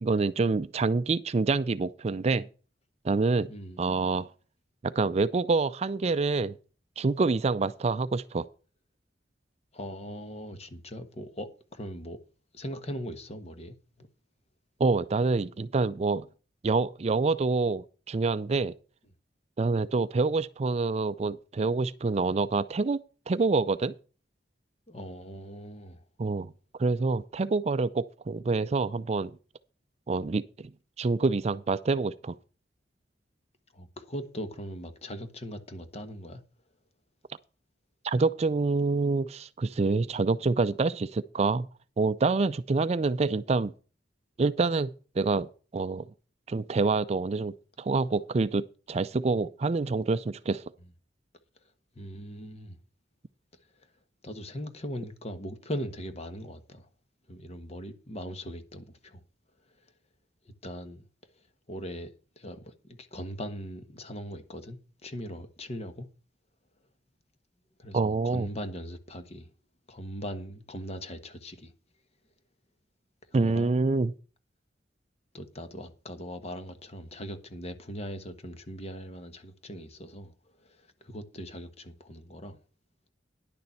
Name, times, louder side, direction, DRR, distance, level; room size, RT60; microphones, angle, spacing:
voice 1, 0.0-2.5 3.0-3.5 3.8-4.3 4.8-6.6 7.0-8.5 14.8-16.3 16.6-18.7 19.6-23.0 23.3-23.9 26.2-26.5 26.8-29.3 30.1-30.7 31.0-32.4 38.0-41.7 42.0-43.7 44.4-44.9 45.2-46.1 46.5-50.6 67.9-68.5 73.3-74.1, right 3 dB, 35° right, 0.4 m, -27 dB
voice 2, 3.5-3.8 9.7-12.2 12.5-14.1 24.9-26.0 33.7-36.4 51.9-52.8 54.2-56.9 57.3-59.2 60.4-61.0 61.7-62.1 62.4-66.1 67.8-69.5 69.9-71.7 73.4-73.8 75.3-80.3 80.6-82.6, equal, 35° left, 1.3 m, -40 dB
10.5 x 6.8 x 5.7 m
head